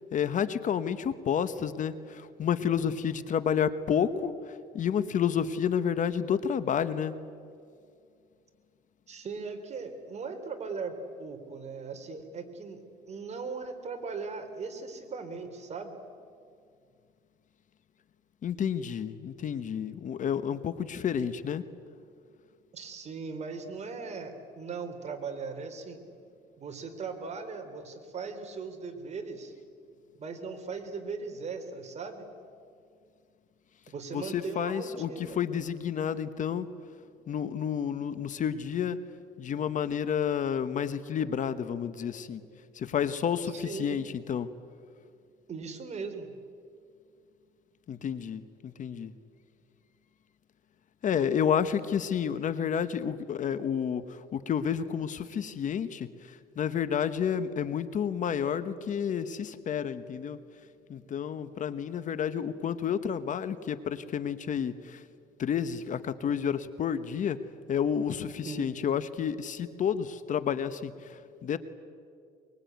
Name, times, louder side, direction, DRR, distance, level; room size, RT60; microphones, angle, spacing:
voice 1, 0.0-7.2 18.4-21.6 34.1-36.7 37.3-39.1 39.4-42.4 42.7-44.5 47.9-49.1 51.0-60.4 60.9-65.0 65.4-67.4 67.7-71.6, left 8 dB, 50° left, 12 dB, 1.2 m, -30 dB
voice 2, 9.1-10.9 11.2-12.8 13.1-16.0 22.7-26.0 26.6-29.5 30.2-32.3 33.9-35.4 43.5-44.0 45.5-46.3 68.4-68.8, right 4 dB, 40° right, 6 dB, 3.6 m, -38 dB
23.5 x 22.5 x 9.4 m, 2.3 s
cardioid pair, 110°, 17 cm